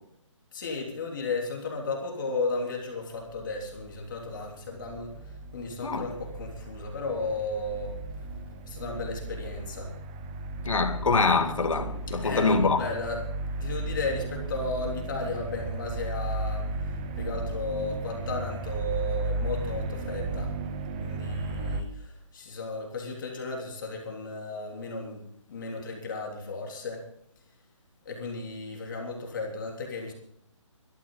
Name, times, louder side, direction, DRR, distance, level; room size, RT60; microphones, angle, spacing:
voice 1, 0.5-8.3 8.7-9.9 12.1-13.2 13.6-20.5 21.0-27.1 28.1-30.1, left 3 dB, 40° left, 3.5 m, -34 dB
sound 1, 3.2-21.8, right 2 dB, 15° right, 0.7 m, -35 dB
voice 2, 10.6-12.9, left 4 dB, 75° left, 2.3 m, -24 dB
21.0 x 13.5 x 3.9 m
hypercardioid pair, 165°, 17 cm